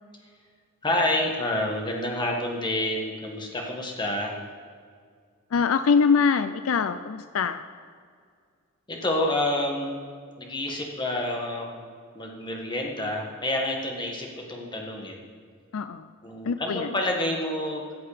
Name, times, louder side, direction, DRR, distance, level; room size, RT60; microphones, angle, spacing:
voice 1, 0.8-4.3 8.9-10.0 10.4-11.8 12.1-15.2 16.2-17.8, left 1 dB, 20° left, 0 dB, 1.7 m, -28 dB
voice 2, 5.5-7.6 15.7-16.1 16.4-17.0, left 5 dB, 75° left, 11 dB, 0.4 m, -23 dB
14.5 x 7.8 x 5.0 m, 2.1 s
head